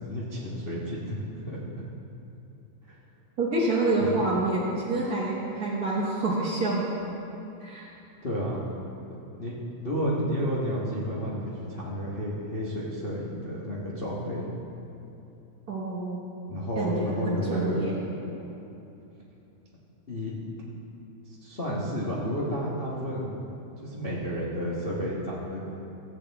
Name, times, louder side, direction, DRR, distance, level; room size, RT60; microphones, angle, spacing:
voice 1, 0.1-1.6 2.9-3.0 4.0-4.2 8.2-8.6 9.4-14.5 16.5-17.9 20.1-20.5 21.4-23.5 23.8-25.7, equal, 70° left, -7 dB, 0.5 m, -31 dB
voice 2, 3.4-6.9 7.6-7.9 15.7-16.2 16.8-18.0, right 2 dB, 65° right, -6 dB, 0.9 m, -27 dB
15.0 x 8.5 x 3.5 m, 2.8 s
omnidirectional pair, 3.4 m